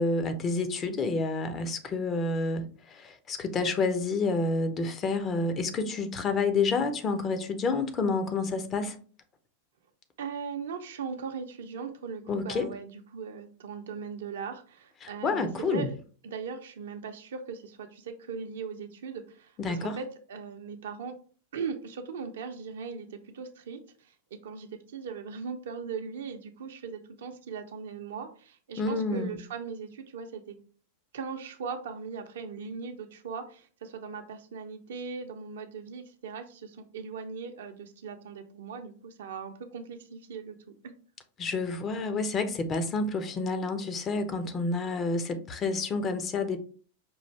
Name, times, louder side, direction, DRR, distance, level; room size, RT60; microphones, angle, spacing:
voice 1, 0.0-2.6 2.9-9.0 12.3-12.7 15.0-15.9 19.6-20.0 28.8-29.4 41.4-46.6, left 3 dB, 25° left, 0.6 m, -29 dB
voice 2, 10.2-16.0 16.2-21.1 21.5-30.6 31.1-40.7, right 5 dB, 60° right, 0.6 m, -39 dB
5.3 x 2.5 x 3.3 m
figure-of-eight pair, 90°, 0 cm